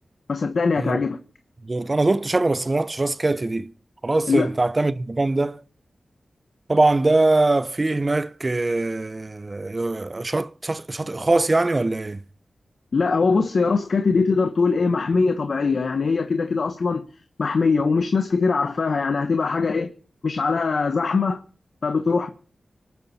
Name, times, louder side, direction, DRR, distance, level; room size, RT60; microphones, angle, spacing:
voice 1, 0.3-1.2 4.3-4.5 12.9-17.0 17.4-19.9 20.2-21.4 21.8-22.3, left 4 dB, 70° left, 1.2 m, -21 dB
voice 2, 1.6-3.7 4.0-5.6 6.7-12.2, right 2 dB, 30° right, 0.7 m, -22 dB
25.5 x 9.4 x 4.3 m
wide cardioid pair, 90°, 0 cm